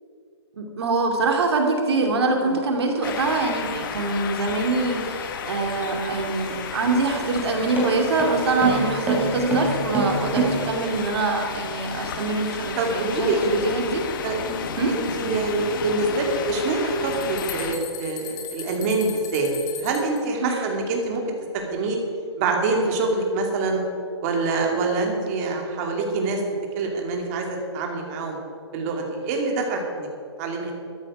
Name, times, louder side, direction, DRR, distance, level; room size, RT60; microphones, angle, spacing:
voice 1, 0.6-14.0 14.8-14.9 20.4-20.6, right 3 dB, 65° right, 2 dB, 2.8 m, -24 dB
sound 1, 3.0-17.7, left 7 dB, 45° left, 1.1 m, -33 dB
sound 2, 6.4-11.0, right 3 dB, 10° right, 3.1 m, -26 dB
voice 2, 12.8-13.5 14.2-14.6 14.9-21.2 21.5-22.0 22.4-23.8 24.2-26.4 26.8-28.4 28.7-30.1 30.4-30.7, right 3 dB, 35° right, 1 dB, 2.6 m, -25 dB
sound 3, 17.1-20.2, left 8 dB, 20° left, 1.8 m, -38 dB
13.5 x 12.5 x 5.0 m, 2.4 s
hypercardioid pair, 145°, 15 cm